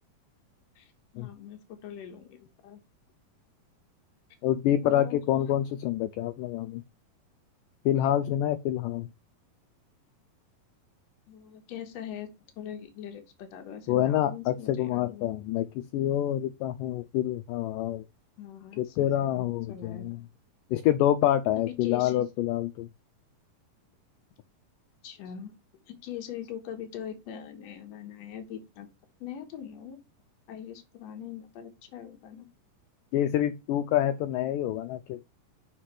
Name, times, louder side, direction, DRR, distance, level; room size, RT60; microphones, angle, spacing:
voice 1, 0.8-2.8 4.8-5.2 11.3-12.3 12.6-15.3 18.4-20.2 21.7-22.3 25.0-25.6 25.9-28.9 29.2-30.0 30.5-32.5, left 9 dB, 60° left, 2.0 m, -42 dB
voice 2, 4.4-6.8 7.9-9.1 13.9-18.0 18.8-20.2 20.7-22.9 33.1-35.2, left 12 dB, 80° left, 2.0 m, -27 dB
5.8 x 5.8 x 3.2 m
omnidirectional pair, 4.2 m